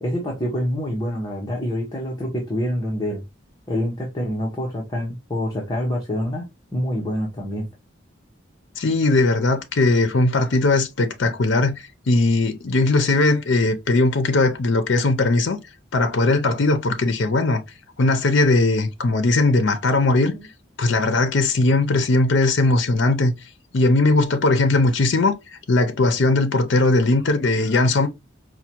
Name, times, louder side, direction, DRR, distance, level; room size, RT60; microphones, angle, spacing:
voice 1, 0.0-3.2 3.7-6.4 6.7-7.7 20.3-20.5, equal, 20° left, 0.8 m, -26 dB
voice 2, 8.8-11.8 12.1-15.6 15.9-17.6 18.0-20.3 20.8-23.3 23.7-25.4 25.7-28.1, left 2 dB, 65° left, 0.5 m, -19 dB
4.5 x 2.2 x 2.9 m
head